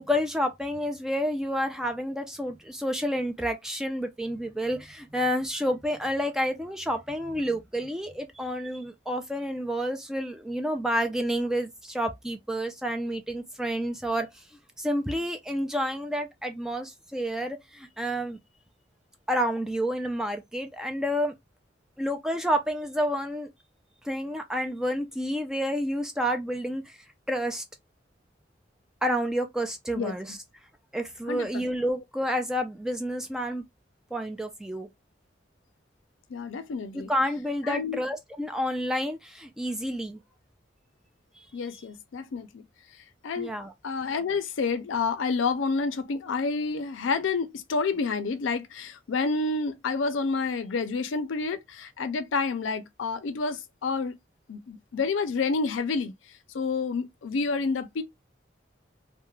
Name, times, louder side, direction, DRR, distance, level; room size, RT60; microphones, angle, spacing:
voice 1, 0.0-14.4 14.8-18.4 19.3-21.3 22.0-23.5 24.0-27.6 29.0-30.4 30.9-33.6 34.1-34.9 36.9-40.2 41.3-41.5 41.7-41.8 43.4-43.7, equal, 5° right, 0.3 m, -29 dB
voice 2, 31.3-31.6 36.3-37.1 37.6-38.0 41.5-42.6 43.2-43.5 43.8-54.2 54.5-56.1 56.5-58.0, left 4 dB, 90° left, 0.4 m, -29 dB
2.3 x 2.1 x 3.0 m
head